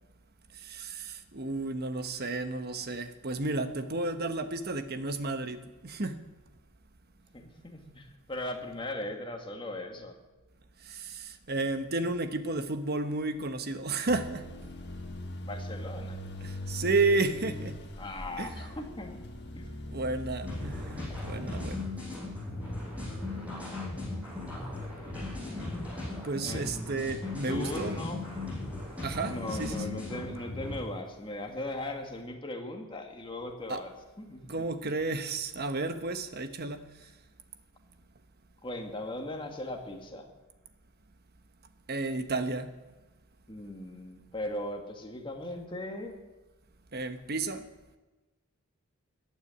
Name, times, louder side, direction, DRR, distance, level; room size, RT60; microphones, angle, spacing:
voice 1, 0.6-6.3 10.8-14.4 16.4-17.8 18.4-18.7 19.9-21.8 26.2-28.0 29.0-29.8 33.7-33.8 34.5-36.8 41.9-42.7 46.9-47.6, right 3 dB, 50° right, 9 dB, 1.2 m, -32 dB
voice 2, 7.3-10.2 15.5-16.2 18.0-19.2 19.5-19.7 26.4-28.2 29.3-34.7 38.6-40.3 43.5-46.2, left 1 dB, 25° left, 3 dB, 1.9 m, -39 dB
sound 1, 14.1-21.8, left 1 dB, 55° left, 1.8 m, -41 dB
sound 2, 20.4-30.8, left 2 dB, 5° right, 6.7 m, -37 dB
15.0 x 9.3 x 10.0 m, 1.2 s
head